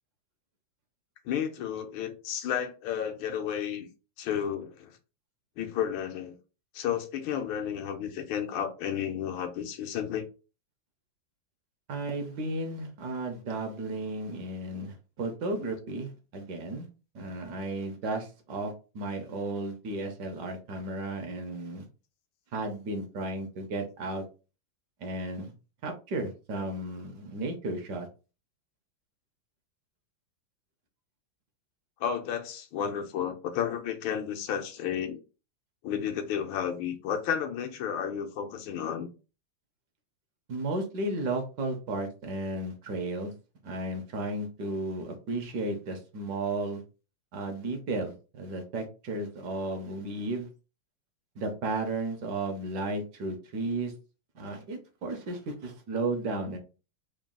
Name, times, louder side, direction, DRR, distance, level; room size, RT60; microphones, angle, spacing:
voice 1, 1.2-3.9 4.2-4.9 5.6-6.3 6.7-10.2 15.6-15.7 32.0-35.2 35.8-39.1, left 8 dB, 90° left, 1.5 m, -32 dB
voice 2, 11.9-16.9 17.1-21.9 22.5-24.2 25.0-25.5 25.8-28.1 40.5-43.3 43.6-46.8 47.3-50.5 51.4-53.9 54.3-56.6, right 2 dB, 65° right, 1.2 m, -34 dB
3.9 x 2.2 x 3.6 m
omnidirectional pair, 2.2 m